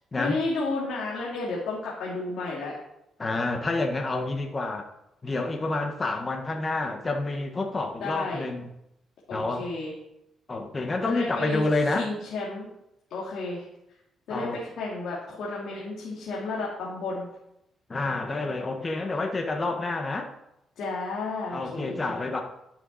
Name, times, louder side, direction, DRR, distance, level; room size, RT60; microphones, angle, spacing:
voice 1, 0.2-2.7 8.0-8.4 9.3-9.9 11.0-12.7 13.1-13.6 14.3-17.3 20.8-22.2, left 3 dB, 75° left, -5 dB, 2.4 m, -32 dB
voice 2, 3.2-4.8 5.2-8.7 9.3-9.6 10.5-12.1 14.3-14.6 17.9-20.3 21.5-22.4, left 2 dB, 30° left, 3 dB, 1.4 m, -28 dB
11.0 x 6.7 x 4.2 m, 0.82 s
cardioid pair, 90°, 0 cm